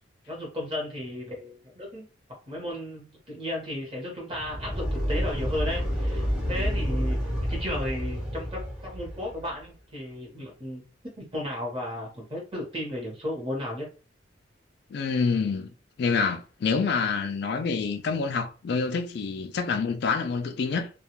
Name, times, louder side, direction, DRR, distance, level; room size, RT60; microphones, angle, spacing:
voice 1, 0.3-2.1 2.5-10.8 11.2-13.9, left 1 dB, 25° right, 1.0 m, -34 dB
sound 1, 4.3-9.5, equal, 5° right, 0.6 m, -29 dB
voice 2, 14.9-15.7 16.0-20.9, left 5 dB, 55° left, 0.3 m, -27 dB
2.3 x 2.2 x 2.9 m
head